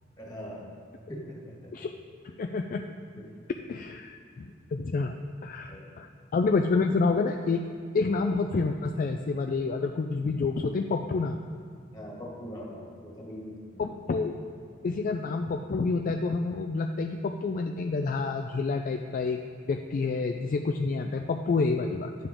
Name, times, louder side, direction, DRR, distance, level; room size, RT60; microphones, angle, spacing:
voice 1, 0.2-0.7 1.1-1.7 3.2-3.4 5.7-5.9 11.9-13.9, equal, 20° left, -4 dB, 1.8 m, -42 dB
voice 2, 2.4-2.9 3.7-5.2 5.4-6.1 6.3-7.6 7.9-11.4 13.8-14.4 14.8-19.4 19.7-22.1, left 4 dB, 40° left, 5 dB, 0.3 m, -28 dB
10.5 x 6.9 x 3.7 m, 2.2 s
head